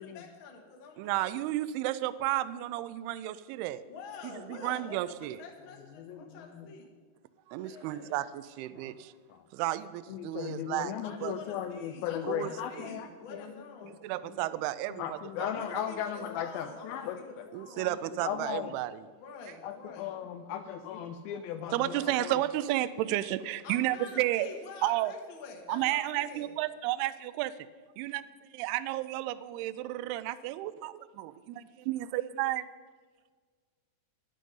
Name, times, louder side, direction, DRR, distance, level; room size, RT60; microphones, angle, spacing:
voice 1, 0.0-1.1 3.9-6.9 7.6-8.1 11.0-14.0 15.4-17.9 19.2-20.1 23.6-26.5, left 4 dB, 60° left, 1 dB, 1.3 m, -47 dB
voice 2, 1.0-3.8 4.5-5.4 7.5-9.1 9.5-10.9 11.2-11.3 12.2-12.5 12.8-12.9 13.9-15.5 17.5-19.0 21.7-24.5 24.8-25.1 25.7-27.5 28.0-32.7, right 15 dB, 85° right, 16 dB, 2.5 m, -32 dB
voice 3, 6.0-6.7 8.7-8.9 9.3-9.4 10.1-13.5 13.8-14.0 14.3-14.4 14.9-17.2 17.8-17.9 18.2-18.8 19.6-22.4, left 9 dB, 80° left, 8 dB, 2.2 m, -37 dB
11.5 x 10.5 x 5.4 m, 1.5 s
omnidirectional pair, 4.6 m